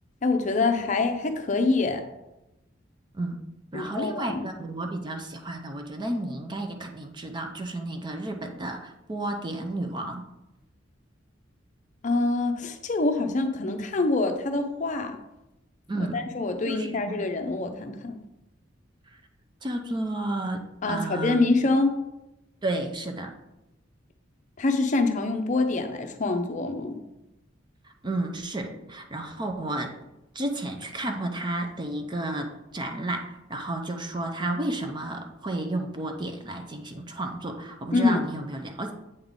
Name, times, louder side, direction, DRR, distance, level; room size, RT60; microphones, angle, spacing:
voice 1, 0.2-2.0 3.7-4.4 12.0-15.2 16.0-18.2 20.8-22.0 24.6-27.0 37.9-38.2, left 3 dB, 40° left, 6 dB, 0.5 m, -25 dB
voice 2, 3.7-10.2 15.9-16.2 16.7-17.2 19.6-21.4 22.6-23.3 27.8-29.9 30.3-38.9, right 1 dB, 25° right, 4 dB, 0.6 m, -32 dB
7.9 x 3.6 x 3.6 m, 0.92 s
head